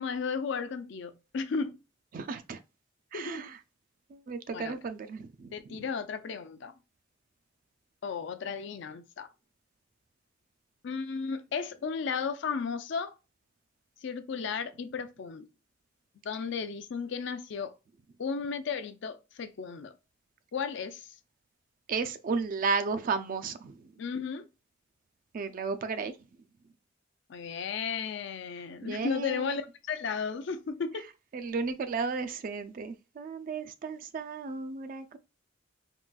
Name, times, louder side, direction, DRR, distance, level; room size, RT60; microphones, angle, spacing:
voice 1, 0.0-1.8 3.1-3.5 4.5-4.7 5.5-6.7 8.0-9.3 10.8-13.2 14.0-15.5 16.2-17.7 18.2-19.9 20.5-21.1 24.0-24.4 27.3-31.1, left 5 dB, 65° left, 0.4 m, -34 dB
voice 2, 2.1-2.6 3.1-3.6 4.1-5.8 21.9-23.9 25.3-26.1 28.8-29.6 31.3-35.2, right 4 dB, 45° right, 0.3 m, -34 dB
3.7 x 2.3 x 2.3 m
head